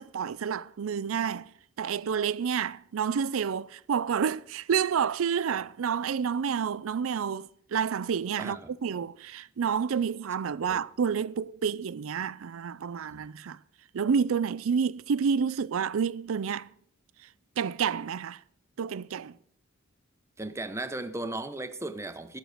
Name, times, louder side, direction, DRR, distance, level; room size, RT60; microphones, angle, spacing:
voice 1, 0.0-1.5 1.8-13.6 13.9-16.7 17.6-18.4 18.8-19.3, right 7 dB, 85° right, 0.4 m, -29 dB
voice 2, 8.4-8.7 10.6-10.8 13.1-13.2 20.4-22.4, right 2 dB, 15° right, 0.8 m, -36 dB
13.0 x 8.0 x 6.4 m
head